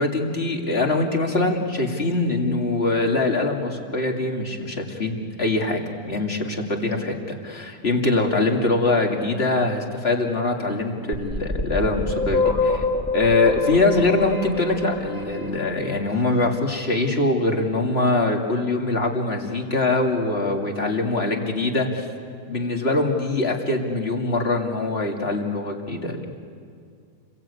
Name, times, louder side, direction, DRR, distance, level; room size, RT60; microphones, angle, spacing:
voice 1, 0.0-12.8 13.1-22.0 22.5-26.3, left 2 dB, 40° left, 1 dB, 2.7 m, -23 dB
sound 1, 11.1-16.0, left 3 dB, 10° left, 2.2 m, -25 dB
29.5 x 22.0 x 8.5 m, 2.2 s
omnidirectional pair, 1.7 m